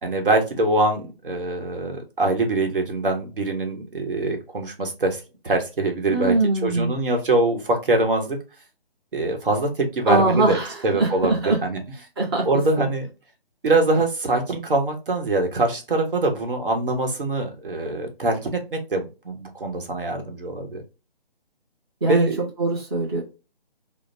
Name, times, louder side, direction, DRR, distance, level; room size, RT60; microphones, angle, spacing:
voice 1, 0.0-6.3 6.6-8.4 9.1-10.6 10.8-11.8 12.4-13.1 13.6-20.8 22.0-22.4, right 2 dB, 60° right, 4 dB, 1.2 m, -23 dB
voice 2, 6.1-6.9 10.1-11.6 12.2-12.5 12.8-12.9 22.0-22.3 22.6-23.2, right 2 dB, 25° right, -3 dB, 0.7 m, -22 dB
4.9 x 2.1 x 2.6 m, 0.30 s
hypercardioid pair, 165°, 30 cm